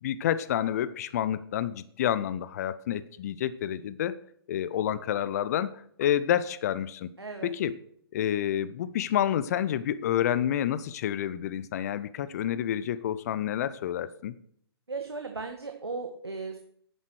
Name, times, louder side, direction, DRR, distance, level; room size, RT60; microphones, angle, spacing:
voice 1, 0.0-4.2 4.5-7.1 7.4-7.8 8.1-14.3, left 10 dB, 40° left, 16 dB, 0.9 m, -29 dB
voice 2, 7.2-7.5 14.9-16.6, right 4 dB, 80° right, 5 dB, 1.8 m, -36 dB
11.0 x 9.7 x 6.4 m, 0.65 s
figure-of-eight pair, 125°, 13 cm